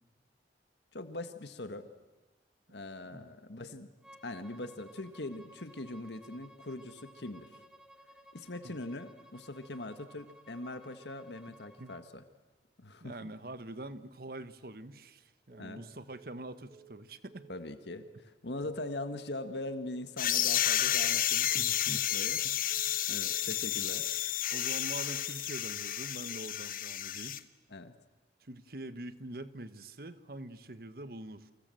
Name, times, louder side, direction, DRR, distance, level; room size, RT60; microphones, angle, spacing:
voice 1, 0.9-1.9 2.7-3.9 4.2-7.5 8.3-12.2 12.8-13.3 15.6-15.8 17.5-24.1 27.7-27.9, left 2 dB, 80° left, 9 dB, 1.6 m, -42 dB
Bowed string instrument, 4.0-12.1, right 1 dB, 5° right, 2.1 m, -57 dB
voice 2, 11.5-11.9 13.0-17.5 21.5-22.1 22.4-22.5 24.5-27.4 28.4-31.5, right 1 dB, 55° right, 12 dB, 1.3 m, -45 dB
Telephone, 15.5-15.8 16.1-16.4 16.7-17.0 17.3-17.6 17.9-18.2 18.5-18.8 19.1-19.4 19.7-20.0 20.3-20.6 20.9-21.2 21.5-21.8 22.1-22.4 22.7-23.0 23.3-23.6 23.9-24.2 24.5-24.8 25.1-25.4 25.7-26.0 26.3-26.6, right 7 dB, 20° right, 3.0 m, -56 dB
sound 1, 20.2-27.4, left 11 dB, 50° left, 1.0 m, -31 dB
29.0 x 25.5 x 7.8 m, 1.2 s
head